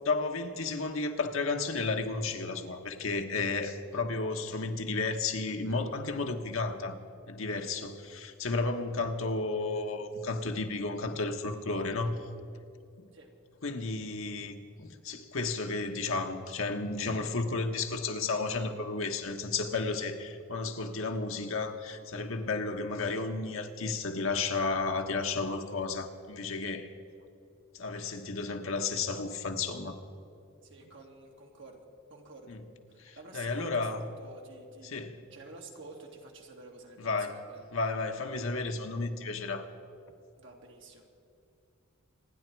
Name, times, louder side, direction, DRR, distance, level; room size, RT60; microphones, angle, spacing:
voice 1, 0.0-6.9 7.3-12.2 13.6-26.9 27.7-29.9 32.5-32.6 33.0-34.1 34.8-35.2 37.0-37.4 37.7-39.6, left 3 dB, 65° left, 5 dB, 1.2 m, -33 dB
voice 2, 30.6-32.6 32.9-34.9 35.3-37.7 40.4-41.1, right 2 dB, 60° right, 1 dB, 2.3 m, -50 dB
26.5 x 10.0 x 4.6 m, 2.6 s
head